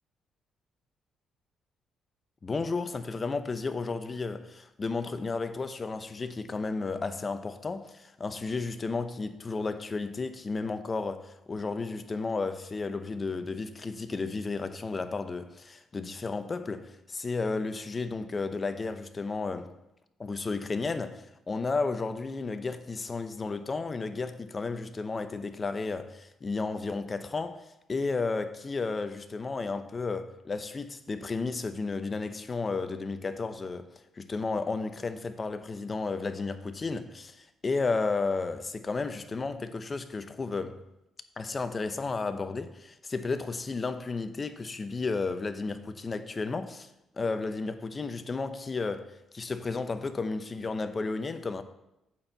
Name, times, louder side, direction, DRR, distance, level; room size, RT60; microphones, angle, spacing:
voice 1, 2.4-19.7 20.2-40.8 41.4-46.9 47.1-51.6, left 4 dB, 30° left, 0.7 m, -33 dB
8.5 x 4.5 x 7.1 m
cardioid pair, 90°, 0 cm